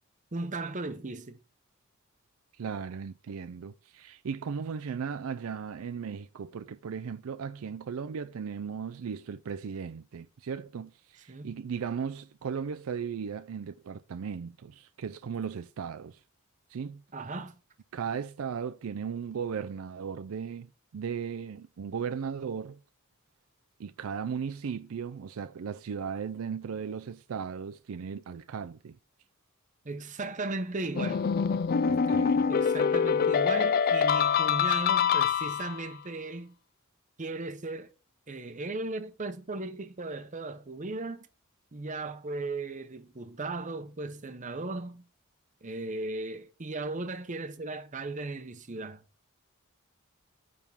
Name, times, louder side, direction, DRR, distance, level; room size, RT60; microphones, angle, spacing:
voice 1, 0.3-1.4 11.3-11.6 17.1-17.6 29.8-31.3 32.5-36.6 37.2-37.9 38.3-41.3 41.7-45.1 45.6-49.0, right 2 dB, 35° right, 0.8 m, -36 dB
voice 2, 2.6-16.2 16.7-17.0 17.9-22.8 23.8-29.0 31.9-32.4, right 6 dB, 75° right, 0.4 m, -36 dB
sound 1, 31.0-35.9, left 6 dB, 45° left, 0.4 m, -25 dB
9.3 x 3.6 x 5.5 m
head